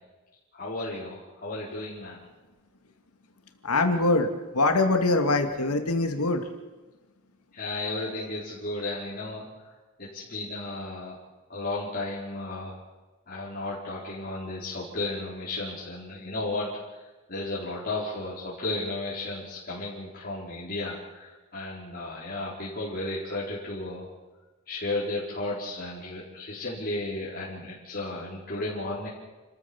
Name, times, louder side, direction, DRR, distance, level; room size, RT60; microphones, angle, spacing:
voice 1, 0.5-2.2 7.5-9.4 10.0-11.2 11.5-12.8 13.3-16.8 17.3-24.1 24.7-29.1, left 2 dB, 40° left, -8 dB, 4.8 m, -34 dB
voice 2, 3.6-4.3 4.5-6.4, left 2 dB, 90° left, 5 dB, 2.4 m, -23 dB
29.5 x 14.5 x 7.3 m, 1.2 s
head